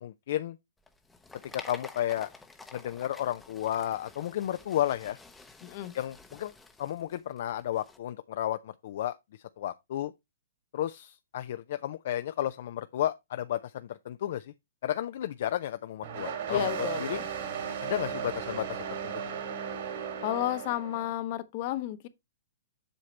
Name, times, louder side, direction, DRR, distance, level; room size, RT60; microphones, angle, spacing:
voice 1, 0.0-0.6 1.5-2.3 2.7-5.2 5.9-6.5 6.8-9.2 9.6-10.1 10.7-14.5 14.8-17.2 17.8-19.4, left 12 dB, 55° left, 0.4 m, -33 dB
sound 1, 0.8-8.0, left 3 dB, 5° left, 0.7 m, -50 dB
voice 2, 5.6-5.9 16.5-17.3 20.2-22.1, left 14 dB, 40° left, 0.8 m, -32 dB
sound 2, 16.0-21.1, right 8 dB, 55° right, 2.1 m, -35 dB
7.8 x 5.7 x 3.2 m
hypercardioid pair, 155°, 0 cm